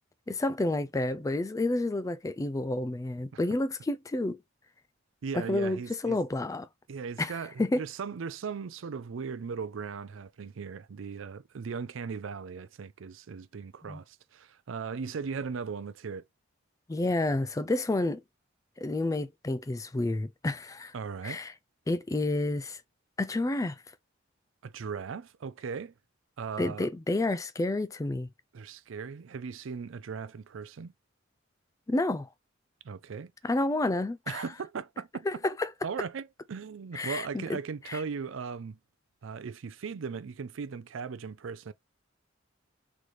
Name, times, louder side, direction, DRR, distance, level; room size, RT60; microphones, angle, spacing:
voice 1, 0.3-4.4 5.3-6.7 7.2-7.8 13.9-14.0 16.9-18.2 18.8-20.9 21.2-21.5 21.9-22.8 23.2-23.8 26.6-28.3 31.9-32.3 33.4-34.4 35.3-35.7 36.9-37.6 37.9-38.0, left 2 dB, 15° left, 0.3 m, -30 dB
voice 2, 5.2-6.2 6.9-16.2 20.9-21.4 24.6-25.9 26.4-26.9 28.5-30.9 32.8-33.3 34.3-35.3 35.8-38.8 39.2-41.7, right 5 dB, 70° right, 0.4 m, -38 dB
3.9 x 3.1 x 3.1 m
head